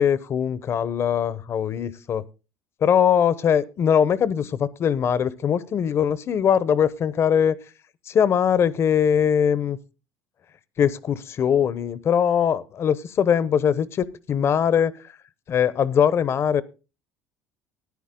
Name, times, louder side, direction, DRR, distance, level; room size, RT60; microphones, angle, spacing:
voice 1, 0.0-2.2 2.8-7.6 8.1-9.8 10.8-14.9 15.5-16.6, left 8 dB, 40° left, 18 dB, 0.9 m, -21 dB
14.0 x 10.0 x 3.8 m, 0.32 s
supercardioid pair, 105°, 6 cm